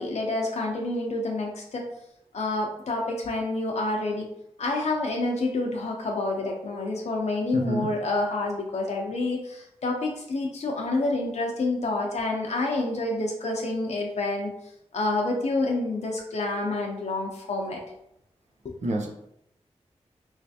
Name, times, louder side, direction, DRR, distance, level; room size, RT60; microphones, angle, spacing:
voice 1, 0.0-1.9 2.3-4.3 4.6-14.5 14.9-17.8 18.6-18.8, left 2 dB, 70° left, 0 dB, 0.6 m, -28 dB
voice 2, 7.5-7.9 18.8-19.1, right 1 dB, 80° right, -1 dB, 0.6 m, -27 dB
3.2 x 3.1 x 2.7 m, 0.78 s
cardioid pair, 50°, 12 cm